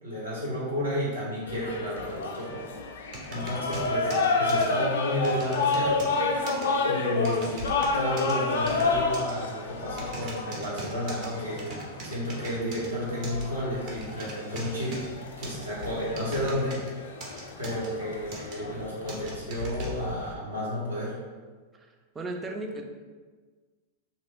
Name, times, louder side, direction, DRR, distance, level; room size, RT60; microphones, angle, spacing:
voice 1, 0.0-2.6 3.3-4.1 4.4-6.1 6.8-11.8 12.0-15.0 15.4-16.8 17.6-21.1, equal, 80° right, -7 dB, 1.0 m, -32 dB
sound 1, 1.5-20.3, left 3 dB, 60° left, 0.3 m, -30 dB
sound 2, 3.1-4.7 5.2-6.2 6.5-6.7 7.2-8.3 8.7-9.3 10.0-11.3 11.6-12.9 13.2-13.4 13.9-15.1 15.4-16.9 17.2-17.9 18.3-18.6 19.1-19.9, right 3 dB, 40° right, 0.7 m, -40 dB
voice 2, 21.7-22.8, right 2 dB, 15° right, 3 dB, 0.4 m, -36 dB
2.9 x 2.6 x 3.0 m, 1.5 s
figure-of-eight pair, 90°, 0 cm